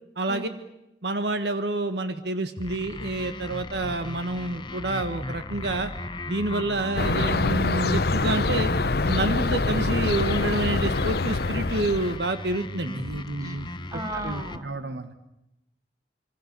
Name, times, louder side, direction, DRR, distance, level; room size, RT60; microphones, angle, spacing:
voice 1, 0.2-0.5 1.0-5.9 6.3-8.7 9.0-13.7 14.2-15.1, right 2 dB, 75° right, 10 dB, 1.5 m, -28 dB
sound 1, 2.6-14.6, left 2 dB, 25° left, 1.0 m, -36 dB
sound 2, 7.0-12.2, left 3 dB, 60° left, 0.9 m, -25 dB
voice 2, 13.9-14.7, right 1 dB, 20° right, 4 dB, 3.2 m, -35 dB
26.0 x 24.5 x 6.8 m, 0.88 s
head